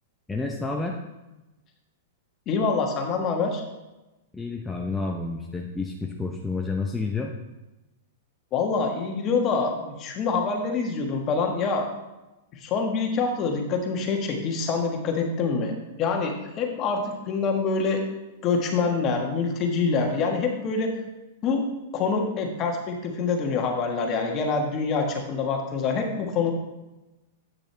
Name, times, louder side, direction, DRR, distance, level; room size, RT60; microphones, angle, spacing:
voice 1, 0.3-1.0 4.3-7.3, left 3 dB, 5° left, 0 dB, 0.7 m, -30 dB
voice 2, 2.5-3.6 8.5-11.8 12.5-18.0 18.4-20.9 21.4-21.7 21.9-26.5, left 4 dB, 35° left, 3 dB, 1.4 m, -26 dB
8.6 x 6.0 x 3.3 m, 1.0 s
hypercardioid pair, 120°, 0 cm